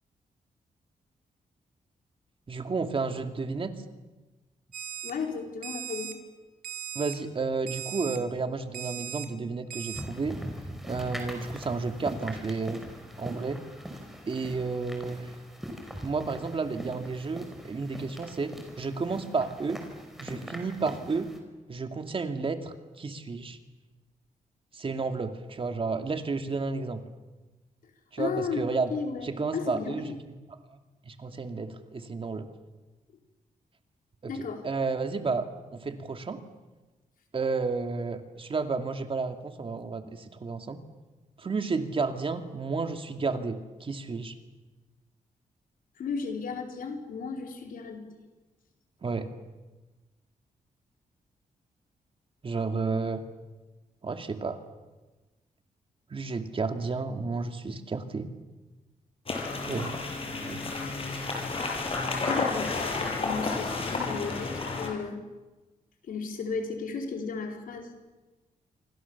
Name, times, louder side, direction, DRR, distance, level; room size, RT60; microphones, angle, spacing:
voice 1, 2.5-3.7 6.9-10.4 10.8-12.8 13.2-13.6 14.3-15.3 16.0-19.8 20.2-21.3 21.7-23.6 24.7-27.0 28.1-28.9 29.2-30.3 30.7-30.8 31.0-32.5 34.2-35.5 35.7-36.4 37.3-40.0 40.4-40.8 41.4-44.3 49.0-49.3 52.4-53.3 54.0-54.6 56.1-58.3 59.7-60.1 60.4-60.6, right 4 dB, 40° right, 6 dB, 2.5 m, -32 dB
Alarm, 4.7-5.1 5.6-6.1 6.6-7.1 7.7-8.2 8.7-9.3 9.7-10.0, right 11 dB, 85° right, 3.4 m, -38 dB
voice 2, 5.0-6.1 28.2-28.6 28.9-30.2 34.3-34.6 46.0-48.0 62.2-65.2 66.1-67.9, left 5 dB, 75° left, 3 dB, 4.4 m, -34 dB
sound 1, 9.9-21.4, equal, ahead, 5.4 m, -42 dB
sound 2, 59.3-64.9, left 3 dB, 40° left, 7.0 m, -31 dB
28.0 x 25.0 x 7.2 m, 1.2 s
cardioid pair, 105°, 14 cm